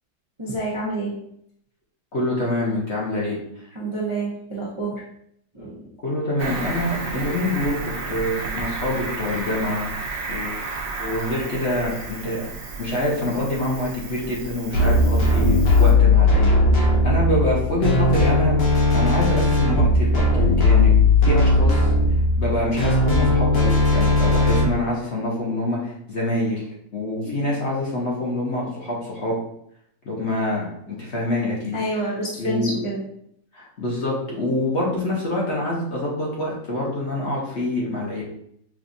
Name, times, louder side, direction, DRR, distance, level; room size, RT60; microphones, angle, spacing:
voice 1, 0.4-1.2 3.7-5.0 5.5-5.9 27.2-27.5 31.7-33.0, right 2 dB, 45° right, -8 dB, 0.3 m, -28 dB
voice 2, 2.1-3.7 6.0-9.9 10.3-10.6 11.0-12.5 12.8-18.6 18.9-20.9 21.2-21.9 22.4-29.4 30.0-32.7 33.5-38.2, left 1 dB, 50° left, -4 dB, 0.9 m, -26 dB
Cricket, 6.4-15.9, right 3 dB, 75° right, 1.4 m, -32 dB
sound 1, 14.7-24.6, left 2 dB, 80° left, 1.7 m, -17 dB
6.0 x 2.4 x 2.6 m, 0.72 s
omnidirectional pair, 2.0 m